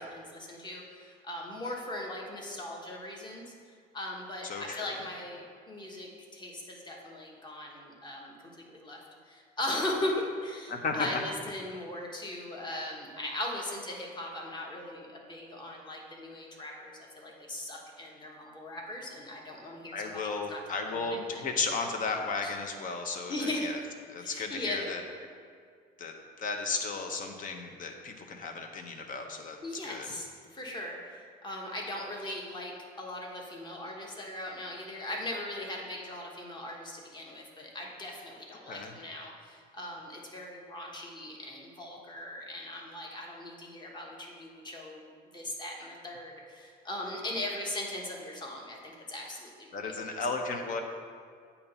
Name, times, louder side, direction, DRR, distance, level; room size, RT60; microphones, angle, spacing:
voice 1, 0.0-3.4 3.9-8.3 8.7-20.2 20.5-21.5 22.4-22.5 23.3-23.7 24.2-24.9 29.6-45.0 45.3-49.7 50.1-50.2, left 1 dB, 25° left, -1 dB, 1.2 m, -39 dB
voice 2, 4.4-5.0 10.7-11.1 19.9-23.8 24.1-25.0 26.0-29.6 29.8-30.1 38.7-38.9 49.7-50.8, left 4 dB, 50° left, 4 dB, 0.8 m, -34 dB
8.6 x 3.0 x 5.4 m, 2.1 s
cardioid pair, 110°, 17 cm